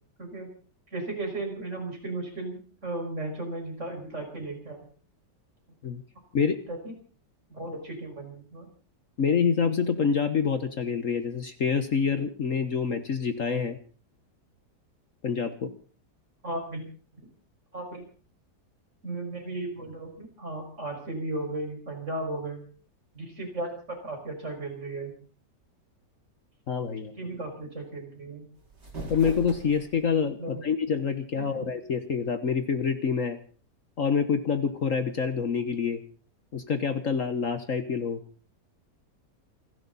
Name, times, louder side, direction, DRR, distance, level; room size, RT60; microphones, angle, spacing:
voice 1, 0.2-0.5 0.9-4.8 6.7-6.9 7.5-8.7 16.4-16.8 17.7-18.0 19.0-22.6 23.1-25.1 27.2-28.4 30.4-30.6 31.3-31.7, right 2 dB, 40° right, 2 dB, 6.1 m, -35 dB
voice 2, 9.2-13.8 15.2-15.7 26.7-27.1 29.1-33.4 34.0-36.0 36.5-38.2, left 6 dB, 50° left, 9 dB, 1.5 m, -27 dB
sound 1, 28.5-30.2, right 2 dB, 75° right, 5.3 m, -40 dB
29.0 x 11.5 x 4.1 m, 0.41 s
omnidirectional pair, 1.8 m